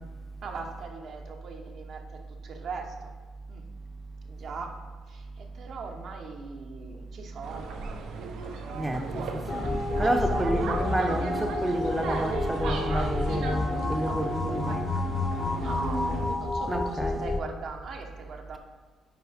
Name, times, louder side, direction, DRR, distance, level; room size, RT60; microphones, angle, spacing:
voice 1, 0.4-3.1 3.5-3.6 4.3-4.8 5.1-7.7 10.0-10.7 15.5-18.6, right 4 dB, 65° right, 3 dB, 1.0 m, -40 dB
sound 1, 7.4-16.4, right 4 dB, 85° right, 0.8 m, -36 dB
voice 2, 8.7-14.8 16.7-17.2, right 1 dB, 15° right, 5 dB, 0.6 m, -30 dB
Meditative Ringing, 9.5-17.4, left 3 dB, 40° left, 0.5 m, -30 dB
9.3 x 4.6 x 3.5 m, 1.4 s
cardioid pair, 90°, 0 cm